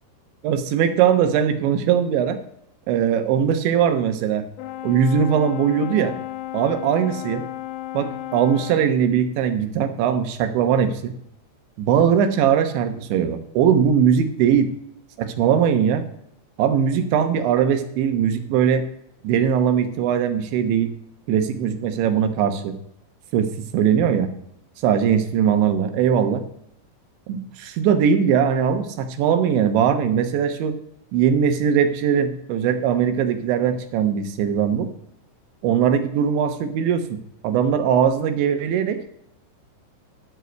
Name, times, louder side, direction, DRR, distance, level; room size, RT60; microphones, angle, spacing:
voice 1, 0.4-2.4 2.9-4.5 4.8-6.1 6.5-7.4 7.9-11.1 11.8-14.7 15.2-16.0 16.6-18.9 19.2-20.9 21.3-22.8 23.3-24.3 24.8-26.4 27.3-30.8 31.1-34.9 35.6-39.0, right 8 dB, 80° right, 8 dB, 3.3 m, -20 dB
Brass instrument, 4.6-9.0, left 14 dB, 85° left, 2.7 m, -33 dB
12.5 x 5.5 x 7.9 m, 0.75 s
omnidirectional pair, 5.4 m